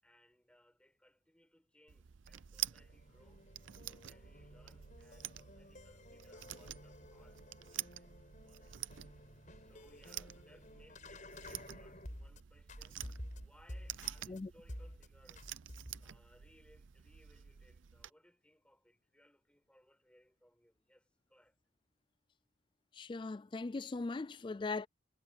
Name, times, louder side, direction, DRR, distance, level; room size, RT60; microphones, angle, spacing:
voice 1, 0.0-3.4 3.8-8.9 9.5-13.2 13.4-15.5 16.0-21.6, equal, 5° left, 7.3 m, -67 dB
sound 1, 1.9-18.1, right 13 dB, 75° right, 0.6 m, -48 dB
sound 2, 2.7-12.4 12.7-14.4 14.7-15.1 15.4-16.1, left 1 dB, 40° left, 5.7 m, -52 dB
voice 2, 23.0-24.9, left 3 dB, 25° left, 0.3 m, -39 dB
head